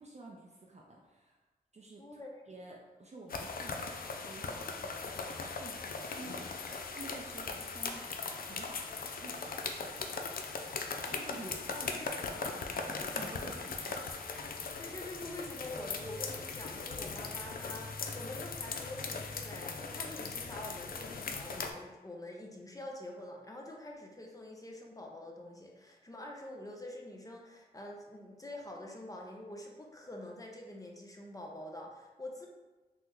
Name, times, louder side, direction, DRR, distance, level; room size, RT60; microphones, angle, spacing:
voice 1, 0.0-1.4 1.7-2.2 2.5-3.9 4.2-10.2 11.1-12.5 12.8-14.1, right 2 dB, 40° right, -2 dB, 0.5 m, -51 dB
voice 2, 2.0-2.3 6.7-6.8 11.4-11.5 11.9-12.1 14.8-32.5, left 1 dB, 20° left, 0 dB, 0.7 m, -46 dB
sound 1, 3.3-21.7, left 4 dB, 60° left, 0.4 m, -39 dB
3.5 x 2.1 x 3.0 m, 1.2 s
cardioid pair, 40°, 17 cm